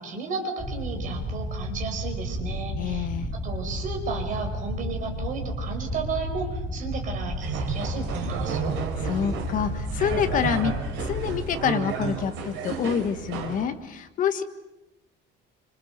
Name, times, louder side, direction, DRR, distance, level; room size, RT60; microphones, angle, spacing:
voice 1, 0.0-3.1 3.4-8.8, right 4 dB, 40° right, 3 dB, 5.0 m, -33 dB
sound 1, 0.6-11.4, equal, 5° left, 3.3 m, -32 dB
voice 2, 2.7-3.3 9.0-10.7 11.0-14.4, left 8 dB, 40° left, 8 dB, 1.6 m, -27 dB
sound 2, 7.4-13.6, right 6 dB, 65° right, 4.5 m, -32 dB
27.0 x 26.0 x 6.8 m, 0.98 s
cardioid pair, 175°, 21 cm